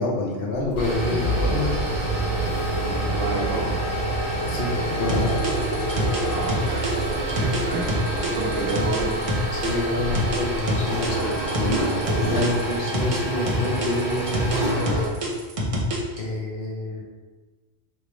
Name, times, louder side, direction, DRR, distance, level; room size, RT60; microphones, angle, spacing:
voice 1, 0.0-1.8 4.5-5.4 9.5-14.9 16.2-17.0, left 2 dB, 55° left, -2 dB, 0.8 m, -28 dB
sound 1, 0.6-15.1, right 2 dB, 30° left, 1.4 m, -27 dB
sound 2, 0.7-11.2, left 1 dB, 80° left, 1.1 m, -37 dB
voice 2, 2.8-3.8 6.2-7.1 7.4-9.1, right 4 dB, 75° right, -1 dB, 1.0 m, -30 dB
sound 3, 5.1-9.7 10.1-13.2 13.5-16.2, right 1 dB, 40° right, 0.5 m, -27 dB
3.3 x 3.0 x 2.9 m, 1.3 s
omnidirectional pair, 1.3 m